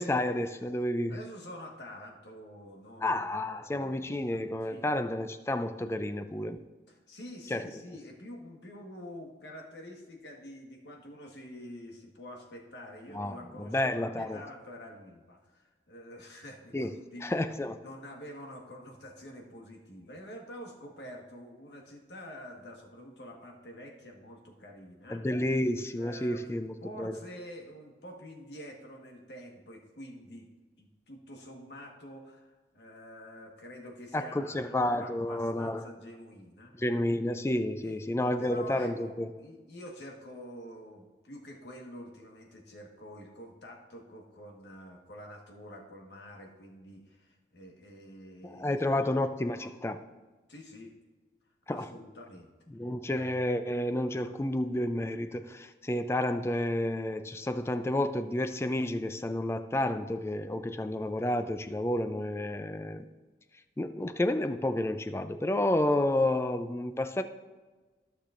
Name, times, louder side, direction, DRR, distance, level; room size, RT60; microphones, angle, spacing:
voice 1, 0.0-1.2 3.0-6.6 7.5-7.6 13.1-14.4 16.7-17.8 25.1-27.2 34.1-35.9 36.8-39.3 48.4-50.0 51.7-51.9 52.7-63.0 63.8-67.2, left 1 dB, 15° left, 10 dB, 0.3 m, -30 dB
voice 2, 1.1-3.2 3.4-4.9 6.9-17.3 17.8-25.3 26.0-26.4 26.8-30.4 30.8-36.8 37.8-38.0 38.4-49.2 50.5-50.9 51.7-52.5, equal, 80° left, 1 dB, 1.4 m, -47 dB
14.5 x 6.6 x 2.5 m, 1.3 s
head